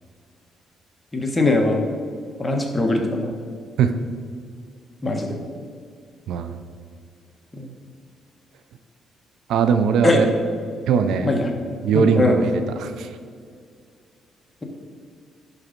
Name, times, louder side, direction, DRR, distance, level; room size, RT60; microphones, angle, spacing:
voice 1, 1.1-1.8 2.4-3.3 5.0-5.4 7.5-7.7 10.0-10.2 11.2-11.5 11.9-12.4, left 2 dB, 20° left, 2 dB, 1.4 m, -21 dB
voice 2, 6.3-6.6 9.5-10.3 10.9-11.3 11.8-13.1, right 6 dB, 80° right, 9 dB, 0.6 m, -20 dB
11.0 x 4.0 x 5.2 m, 2.1 s
cardioid pair, 90°, 0 cm